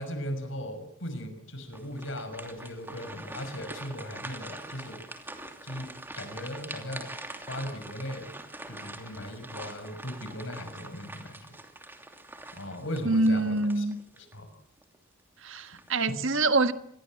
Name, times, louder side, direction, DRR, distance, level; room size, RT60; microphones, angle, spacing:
voice 1, 0.0-5.0 5.6-5.9 6.1-7.1 7.5-8.3 8.7-11.6 12.5-13.8 14.3-14.5 15.5-15.6, left 1 dB, 65° left, 6.2 m, -38 dB
sound 1, 1.7-14.3 14.8-15.0 15.6-16.0, right 2 dB, 10° right, 2.8 m, -44 dB
voice 2, 13.0-14.0 15.4-16.7, right 2 dB, 65° right, 1.6 m, -25 dB
27.0 x 21.5 x 7.7 m
head